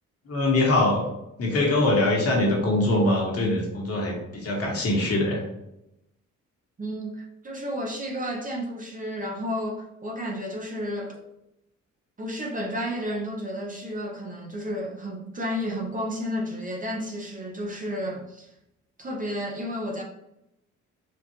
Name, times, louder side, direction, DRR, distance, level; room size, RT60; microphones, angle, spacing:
voice 1, 0.3-1.0 1.4-5.4, left 2 dB, 50° left, 1.5 m, -23 dB
voice 2, 6.8-11.2 12.2-18.5 19.0-20.0, equal, 25° right, 0.8 m, -32 dB
4.4 x 2.5 x 2.9 m
cardioid pair, 90°, 30 cm